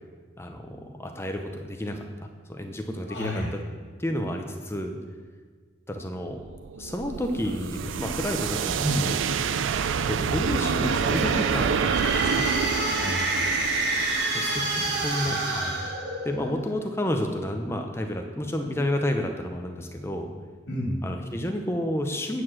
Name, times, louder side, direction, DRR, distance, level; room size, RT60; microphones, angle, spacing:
voice 1, 0.4-3.6 4.0-5.0 5.9-6.4 6.8-9.2 10.1-12.5 14.3-15.9 16.2-20.3 21.0-22.4, left 1 dB, 15° left, 4 dB, 0.7 m, -30 dB
voice 2, 3.1-3.5 8.8-9.0 12.9-13.7 14.4-15.4 20.7-21.0, equal, 70° left, -2 dB, 2.6 m, -32 dB
sound 1, 6.3-15.2, right 6 dB, 85° right, 0.4 m, -28 dB
sound 2, 10.6-16.6, right 2 dB, 55° right, 1.6 m, -28 dB
8.3 x 4.7 x 7.4 m, 1.5 s
head